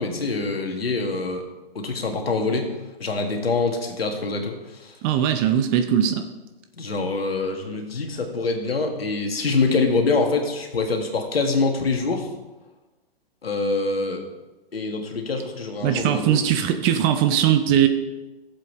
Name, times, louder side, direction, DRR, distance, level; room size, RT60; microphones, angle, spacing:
voice 1, 0.0-1.4 1.8-2.7 3.0-4.9 6.8-12.3 13.4-14.2 14.7-16.4, left 3 dB, 75° left, 3 dB, 1.9 m, -25 dB
voice 2, 5.0-6.2 15.8-17.9, right 10 dB, 20° right, 7 dB, 0.5 m, -20 dB
15.0 x 7.6 x 3.2 m, 1.1 s
figure-of-eight pair, 125°, 30 cm